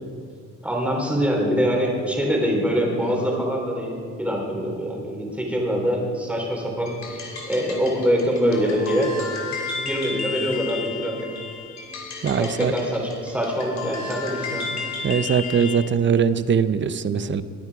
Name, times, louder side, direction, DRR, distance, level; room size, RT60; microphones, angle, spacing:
voice 1, 0.6-9.1 9.8-11.3 12.4-14.7, equal, 5° right, -1 dB, 4.0 m, -24 dB
sound 1, 6.9-15.9, left 4 dB, 65° left, 2.8 m, -33 dB
voice 2, 12.2-12.7 15.0-17.4, right 7 dB, 40° right, 14 dB, 0.7 m, -21 dB
20.0 x 9.5 x 5.0 m, 2.2 s
cardioid pair, 90°, 30 cm